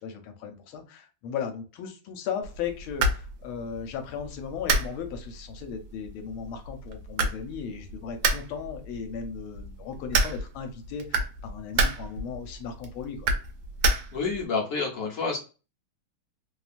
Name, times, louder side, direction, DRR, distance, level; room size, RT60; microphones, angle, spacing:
voice 1, 0.0-13.3, left 7 dB, 80° left, 6 dB, 1.4 m, -36 dB
sound 1, 2.4-14.5, right 2 dB, 75° right, 1.2 m, -30 dB
voice 2, 14.1-15.4, left 4 dB, 60° left, -2 dB, 0.9 m, -29 dB
3.3 x 2.3 x 2.4 m, 0.33 s
omnidirectional pair, 2.2 m